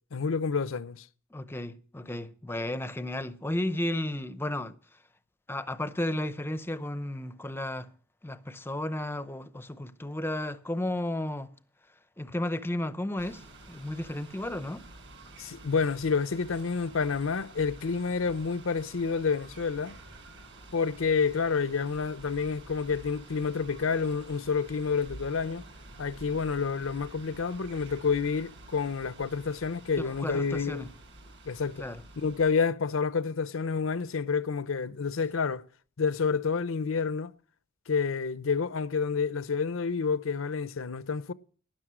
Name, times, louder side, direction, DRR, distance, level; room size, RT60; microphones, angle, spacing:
voice 1, 0.1-1.1 15.4-20.0 20.7-25.6 26.0-30.9 31.4-31.8 32.2-35.6 36.0-37.3 37.9-41.3, left 5 dB, 70° left, 0.6 m, -29 dB
voice 2, 1.3-4.7 5.5-7.9 8.2-11.5 12.2-13.4 13.7-14.9 30.0-30.9 31.8-32.0, left 1 dB, 10° left, 0.7 m, -33 dB
sound 1, 13.2-32.5, right 2 dB, 60° right, 5.0 m, -49 dB
12.5 x 10.5 x 6.2 m
head